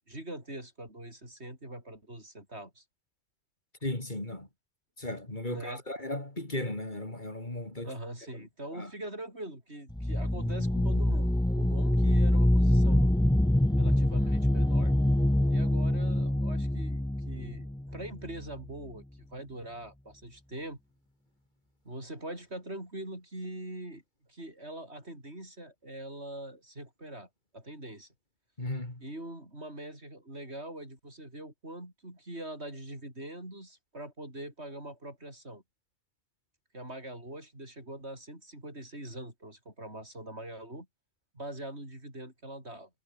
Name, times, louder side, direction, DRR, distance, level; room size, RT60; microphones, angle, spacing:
voice 1, 0.0-2.8 5.5-5.8 7.8-13.1 13.8-14.9 15.5-19.0 19.3-20.8 21.8-24.0 24.3-27.3 27.5-28.1 29.0-35.6 36.7-40.9 41.3-42.9, right 1 dB, 60° right, 8.5 m, -43 dB
voice 2, 3.8-4.5 5.0-7.9 8.4-8.9 28.6-29.0, left 1 dB, 40° left, 3.9 m, -36 dB
sound 1, 9.9-18.6, left 1 dB, 5° left, 0.5 m, -25 dB
omnidirectional pair, 1.2 m